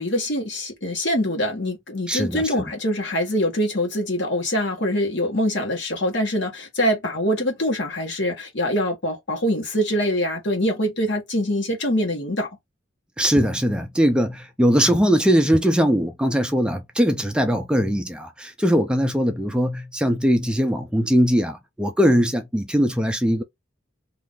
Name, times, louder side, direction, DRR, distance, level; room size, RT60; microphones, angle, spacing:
voice 1, 0.0-12.5, equal, 65° left, 1.3 m, -24 dB
voice 2, 2.1-2.6 13.2-23.4, equal, 5° right, 0.4 m, -20 dB
2.7 x 2.5 x 3.7 m
head